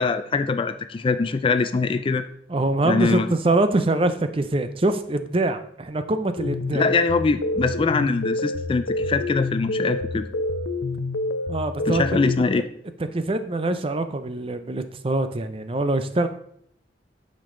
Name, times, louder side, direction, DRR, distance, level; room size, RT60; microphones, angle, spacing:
voice 1, 0.0-2.2 2.8-3.3 6.7-10.3 11.9-12.6, left 4 dB, 30° left, 11 dB, 0.3 m, -23 dB
voice 2, 2.5-6.8 11.5-12.3 13.1-16.3, right 2 dB, 30° right, 10 dB, 0.5 m, -24 dB
sound 1, 6.4-12.4, left 2 dB, 85° left, 0.6 m, -27 dB
8.7 x 5.3 x 3.8 m, 0.68 s
head